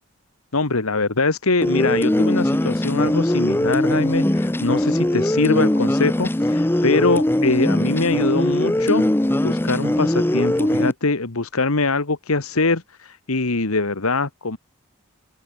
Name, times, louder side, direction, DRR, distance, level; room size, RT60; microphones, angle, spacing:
voice 1, 0.5-9.0 9.4-14.6, left 3 dB, 85° left, 1.6 m, -23 dB
sound 1, 1.6-10.9, left 1 dB, 10° left, 0.5 m, -20 dB
open air
head